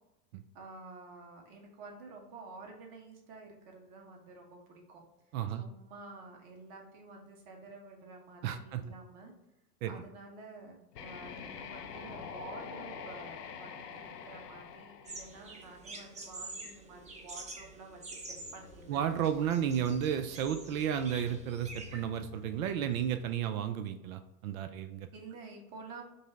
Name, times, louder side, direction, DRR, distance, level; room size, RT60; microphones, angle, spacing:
voice 1, 0.5-5.0 5.6-9.3 9.9-19.1 25.1-26.0, right 3 dB, 45° right, 1 dB, 1.3 m, -50 dB
voice 2, 8.4-8.8 9.8-9.9 18.9-25.1, right 9 dB, 60° right, 9 dB, 0.5 m, -33 dB
sound 1, 10.9-15.9, left 6 dB, 85° left, 0.7 m, -45 dB
sound 2, 15.1-22.0, right 2 dB, 15° right, 0.6 m, -47 dB
sound 3, 18.3-23.3, left 9 dB, 35° left, 0.8 m, -53 dB
5.3 x 2.0 x 4.0 m, 0.93 s
hypercardioid pair, 100°, 47 cm